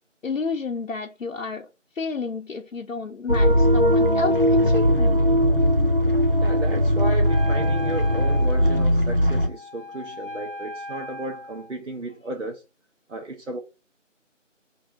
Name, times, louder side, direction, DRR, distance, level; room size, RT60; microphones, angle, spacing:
voice 1, 0.2-1.7 1.9-5.2, left 4 dB, 80° left, 0.6 m, -31 dB
sound 1, 3.3-9.5, equal, 45° right, 0.5 m, -19 dB
voice 2, 6.4-12.6 13.1-13.6, right 2 dB, 65° right, 0.8 m, -34 dB
Wind instrument woodwind instrument, 7.2-11.8, left 2 dB, 45° left, 0.7 m, -37 dB
2.6 x 2.4 x 4.0 m
figure-of-eight pair, 175°, 39 cm